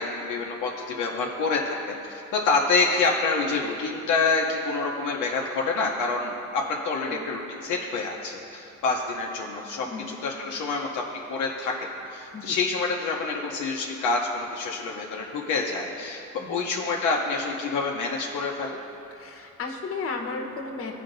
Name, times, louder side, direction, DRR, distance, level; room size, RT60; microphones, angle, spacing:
voice 1, 0.0-11.0 11.3-11.7 12.1-18.8, left 4 dB, 80° left, -1 dB, 0.8 m, -27 dB
voice 2, 19.1-20.9, left 4 dB, 50° left, 2 dB, 1.1 m, -34 dB
14.5 x 5.0 x 2.6 m, 2.9 s
cardioid pair, 90°, 30 cm